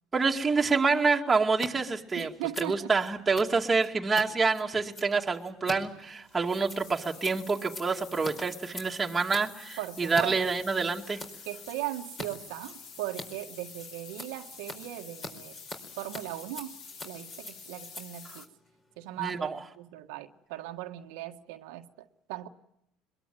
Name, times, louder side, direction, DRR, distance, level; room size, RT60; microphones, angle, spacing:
voice 1, 0.1-2.3 2.6-11.2 19.2-19.6, right 4 dB, 15° right, 2.3 m, -27 dB
Scissors, 1.5-1.7 2.0-10.3 10.6-11.3 11.6-12.3 12.5-19.3, left 2 dB, 25° left, 4.7 m, -44 dB
voice 2, 2.2-2.9 9.8-10.4 11.4-15.6 16.0-16.7 17.0-18.5 19.0-22.5, right 15 dB, 85° right, 1.5 m, -38 dB
sound 1, 6.0-18.5, left 5 dB, 55° left, 3.5 m, -48 dB
23.0 x 22.0 x 9.2 m
cardioid pair, 130°, 0 cm